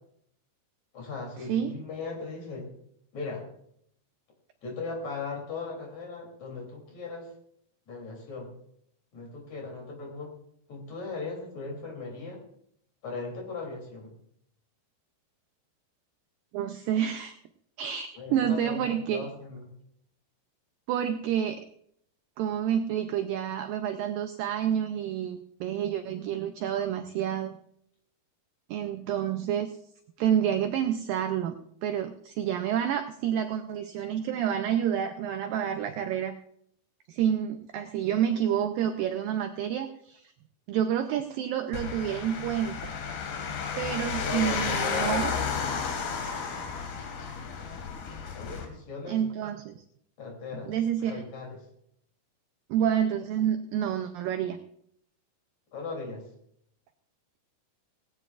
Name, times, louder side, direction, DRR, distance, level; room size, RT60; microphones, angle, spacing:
voice 1, 0.9-2.7 3.1-3.4 4.6-7.3 7.9-8.5 9.1-10.3 10.7-12.4 13.0-14.1 18.2-19.7 44.2-45.7 48.3-49.2 50.2-50.7 51.0-51.6 55.7-56.3, left 4 dB, 45° left, 0 dB, 4.3 m, -38 dB
voice 2, 16.5-17.3 17.8-19.3 20.9-21.6 22.4-27.5 28.7-29.7 30.2-31.5 31.8-36.4 37.1-40.3 40.7-42.9 43.8-45.3 49.1-49.8 50.7-51.2 52.7-54.6, right 9 dB, 80° right, 7 dB, 2.1 m, -29 dB
sound 1, 41.7-48.7, left 6 dB, 75° left, 3.8 m, -32 dB
18.0 x 18.0 x 2.5 m, 0.70 s
omnidirectional pair, 4.7 m